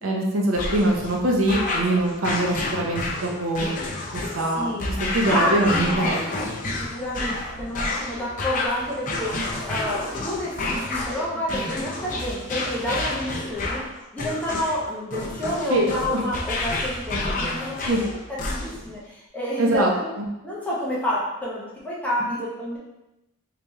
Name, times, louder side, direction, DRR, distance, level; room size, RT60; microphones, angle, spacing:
voice 1, 0.0-3.7 4.1-4.7 5.1-6.2 15.7-16.2 17.8-18.0 19.6-19.9, right 1 dB, 70° right, -1 dB, 0.7 m, -23 dB
sound 1, 0.5-18.9, left 2 dB, 40° left, 0.5 m, -30 dB
voice 2, 4.5-4.9 5.3-6.1 6.7-13.8 14.1-20.1 20.4-22.8, left 1 dB, 5° left, -7 dB, 0.8 m, -29 dB
3.3 x 2.9 x 3.4 m, 0.96 s
head